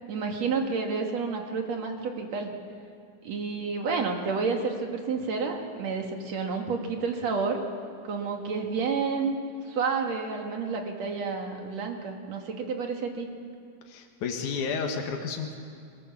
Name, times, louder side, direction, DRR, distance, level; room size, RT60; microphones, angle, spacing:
voice 1, 0.1-2.5 3.2-7.6 8.0-9.4 9.7-13.3, right 5 dB, 60° right, 3 dB, 3.1 m, -30 dB
voice 2, 13.9-15.6, left 5 dB, 80° left, 3 dB, 3.0 m, -31 dB
23.5 x 19.0 x 7.2 m, 2.3 s
omnidirectional pair, 3.5 m